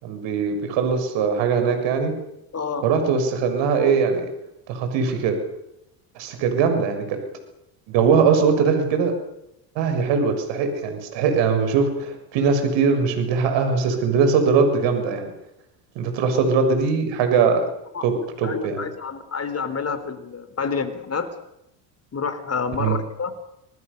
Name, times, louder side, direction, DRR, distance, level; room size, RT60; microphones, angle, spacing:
voice 1, 0.0-2.1 2.8-4.2 4.7-5.3 6.1-7.2 7.9-9.1 9.7-15.3 15.9-17.6 18.0-18.9 22.8-23.0, right 5 dB, 65° right, 7 dB, 6.5 m, -21 dB
voice 2, 2.5-2.9 16.3-16.5 17.9-21.3 22.1-23.3, left 5 dB, 30° left, 11 dB, 4.5 m, -29 dB
27.5 x 20.0 x 7.0 m, 0.83 s
hypercardioid pair, 75°, 47 cm